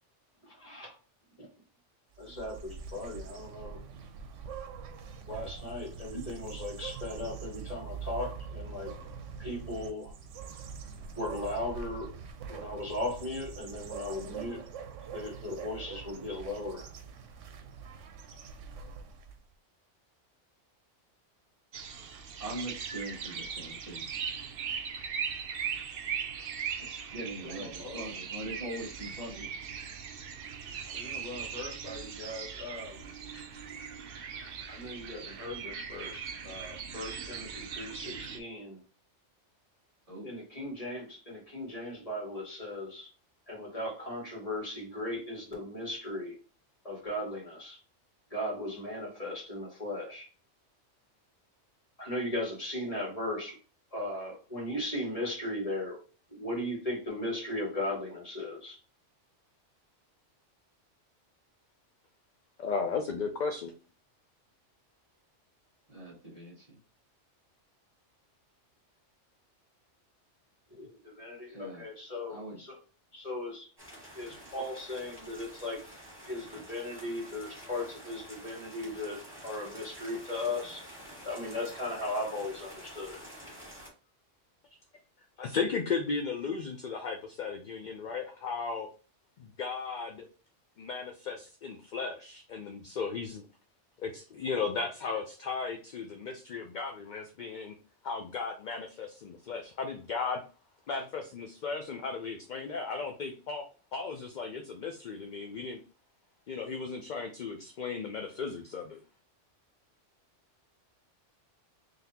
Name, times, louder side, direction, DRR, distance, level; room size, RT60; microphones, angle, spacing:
voice 1, 0.4-0.9 1.4-1.5 2.2-3.8 5.3-8.9 9.4-10.1 11.2-12.2 12.5-14.6 15.1-16.9 27.4-28.0 30.8-33.4 34.3-38.8 40.2-43.1 43.5-46.4 46.8-47.8 48.3-50.2 52.0-53.6 53.9-56.0 56.3-58.8 70.8-72.8 73.1-73.7 74.1-75.8 76.2-80.8 81.2-83.2, left 1 dB, 30° left, -3 dB, 1.9 m, -37 dB
sound 1, 2.2-19.5, right 6 dB, 85° right, 1.0 m, -44 dB
sound 2, 21.7-38.4, right 7 dB, 60° right, 0.7 m, -39 dB
voice 2, 22.4-24.1 26.8-29.5 40.1-40.3 65.9-66.8 71.5-71.8 72.3-72.6, right 1 dB, 30° right, -3 dB, 1.3 m, -41 dB
voice 3, 62.6-63.7 85.4-88.9 89.4-90.3 90.8-93.4 94.0-97.8 98.0-100.4 100.9-103.6 103.9-105.8 106.5-109.0, left 5 dB, 55° left, 4 dB, 0.5 m, -35 dB
sound 3, 73.8-83.9, equal, 10° right, 1.9 m, -49 dB
3.9 x 3.3 x 2.8 m, 0.36 s
omnidirectional pair, 1.2 m